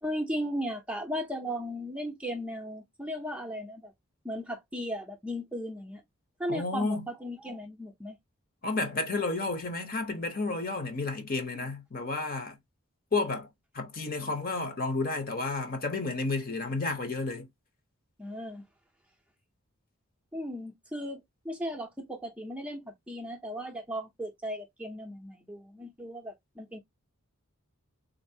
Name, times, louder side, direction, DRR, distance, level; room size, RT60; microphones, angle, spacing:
voice 1, 0.0-3.9 4.2-6.0 6.4-8.2 11.5-11.7 18.2-18.6 20.3-26.8, equal, 5° right, 0.5 m, -36 dB
voice 2, 6.5-7.1 8.6-12.6 13.1-17.5, left 3 dB, 40° left, 0.7 m, -31 dB
3.9 x 2.6 x 2.7 m
head